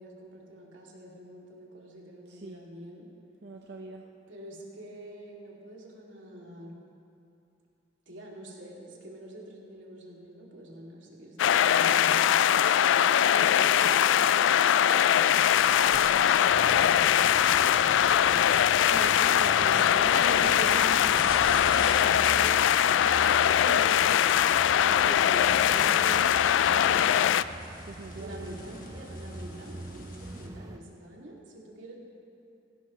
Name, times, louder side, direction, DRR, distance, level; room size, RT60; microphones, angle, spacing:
voice 1, 0.0-3.1 4.3-6.8 8.1-12.4 13.1-18.5 19.4-21.0 22.3-24.5 25.1-26.1 26.6-26.9 28.2-32.0, right 1 dB, 90° right, -3 dB, 2.6 m, -46 dB
voice 2, 2.3-2.6 3.4-4.1 18.9-21.3 22.0-22.7 23.7-23.9 24.7-26.4 26.7-27.4 27.9-28.6, right 2 dB, 60° right, 1 dB, 0.7 m, -41 dB
sound 1, 11.4-27.4, left 10 dB, 85° left, 0.3 m, -22 dB
sound 2, 13.9-30.5, left 3 dB, 45° left, 1.5 m, -46 dB
sound 3, 16.5-30.8, right 2 dB, 20° right, 0.4 m, -43 dB
17.0 x 16.5 x 3.2 m, 2.6 s
head